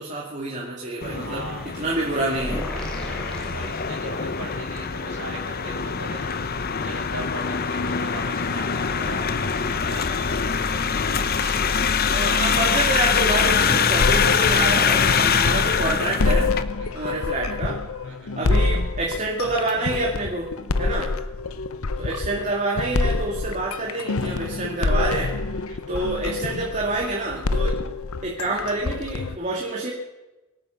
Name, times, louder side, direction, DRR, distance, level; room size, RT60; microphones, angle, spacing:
voice 1, 0.0-1.5 1.7-2.7 12.0-16.5 16.9-17.8 18.3-20.5 20.8-21.1 22.0-25.4 25.9-27.8 28.2-29.9, right 2 dB, 35° right, -3 dB, 2.4 m, -27 dB
sound 1, 1.0-16.6, left 6 dB, 45° left, 0.8 m, -24 dB
voice 2, 1.1-1.8 3.0-10.9 11.3-11.6 16.8-17.2 18.0-18.5 20.7-21.6 25.6-26.0, right 2 dB, 85° right, -7 dB, 5.4 m, -40 dB
sound 2, 2.3-4.5, equal, 5° left, 2.9 m, -34 dB
sound 3, 14.0-29.4, left 3 dB, 90° left, 0.8 m, -27 dB
24.0 x 9.1 x 5.9 m, 1.0 s
head